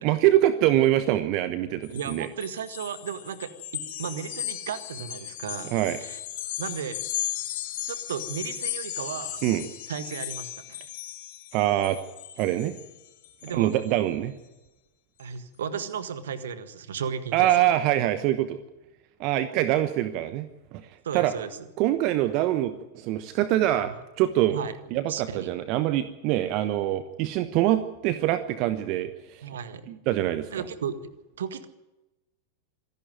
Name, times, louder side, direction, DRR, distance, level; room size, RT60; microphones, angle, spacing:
voice 1, 0.0-2.3 5.7-6.0 9.4-9.7 11.5-12.0 12.4-12.7 13.6-14.3 17.3-18.6 19.2-20.8 21.1-21.3 21.8-24.6 24.9-29.4 29.9-30.5, right 13 dB, 40° right, 12 dB, 1.0 m, -24 dB
sound 1, 1.8-13.9, left 13 dB, 55° left, 3.0 m, -36 dB
voice 2, 1.9-6.2 6.6-7.0 7.9-9.4 9.9-10.8 13.4-13.7 15.2-17.7 21.0-21.7 23.8-24.0 24.5-24.8 25.1-25.5 29.4-29.9 30.5-30.9 31.4-31.7, right 7 dB, 60° right, 12 dB, 1.6 m, -35 dB
26.0 x 11.5 x 9.1 m, 1.0 s
figure-of-eight pair, 90°, 0 cm